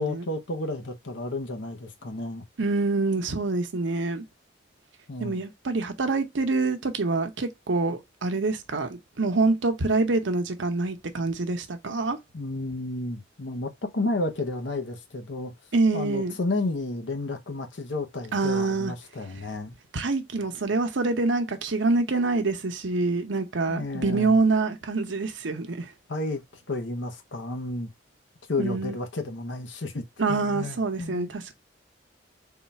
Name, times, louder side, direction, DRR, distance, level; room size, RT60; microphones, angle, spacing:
voice 1, 0.0-2.4 5.1-5.4 12.3-15.5 15.9-19.7 23.7-24.4 26.1-27.9 28.5-31.3, left 2 dB, 75° left, 0.8 m, -32 dB
voice 2, 2.6-4.2 5.2-12.2 15.7-16.4 18.3-18.9 19.9-25.9 28.6-29.0 30.2-31.5, right 3 dB, 80° right, 0.8 m, -26 dB
3.7 x 2.4 x 4.1 m
head